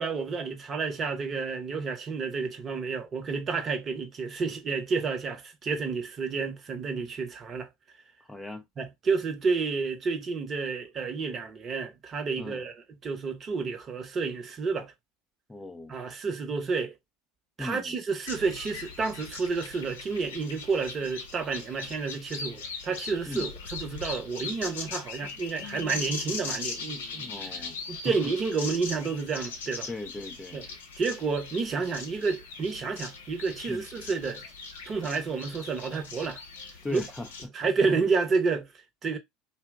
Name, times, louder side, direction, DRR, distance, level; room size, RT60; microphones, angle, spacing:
voice 1, 0.0-7.7 8.8-12.7 13.0-14.9 15.9-16.9 17.6-27.5 27.9-29.9 30.5-30.6 31.0-34.4 34.9-36.4 36.9-37.0 37.5-38.7 39.0-39.2, right 4 dB, 35° right, 0.8 m, -30 dB
voice 2, 8.2-8.7 12.4-12.7 15.5-15.9 17.6-18.0 23.3-23.5 27.2-28.3 29.9-30.6 33.7-33.8 36.8-37.5, left 2 dB, 10° left, 0.4 m, -38 dB
sound 1, 18.3-37.5, left 4 dB, 85° left, 0.7 m, -40 dB
2.8 x 2.1 x 3.4 m
hypercardioid pair, 80°, 0 cm